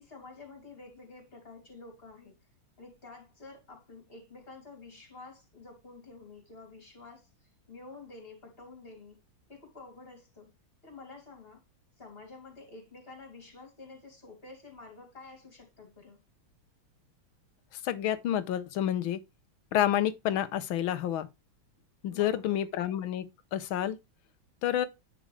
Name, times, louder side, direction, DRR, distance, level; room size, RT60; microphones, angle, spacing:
voice 1, 0.0-2.4 2.8-9.2 9.5-10.5 10.8-11.6 12.0-16.2 22.1-22.7, left 3 dB, 25° left, 2.9 m, -49 dB
voice 2, 17.8-19.2 19.7-21.3 22.0-23.2 23.5-24.0 24.6-24.9, left 11 dB, 75° left, 1.6 m, -29 dB
10.0 x 5.2 x 3.3 m
omnidirectional pair, 2.3 m